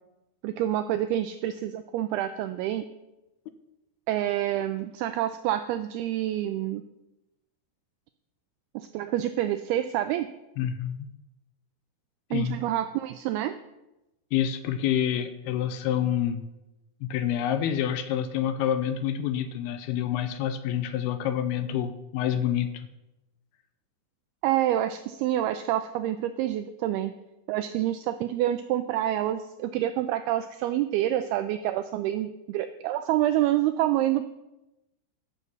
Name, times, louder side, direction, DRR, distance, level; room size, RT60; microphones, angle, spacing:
voice 1, 0.4-2.8 4.1-6.8 8.8-10.3 12.3-13.5 24.4-27.1 27.5-34.2, right 13 dB, 85° right, 10 dB, 2.2 m, -27 dB
voice 2, 10.6-11.1 12.3-12.6 14.3-16.4 17.0-22.7, left 10 dB, 80° left, 10 dB, 2.4 m, -27 dB
14.5 x 7.1 x 5.4 m, 0.96 s
omnidirectional pair, 5.0 m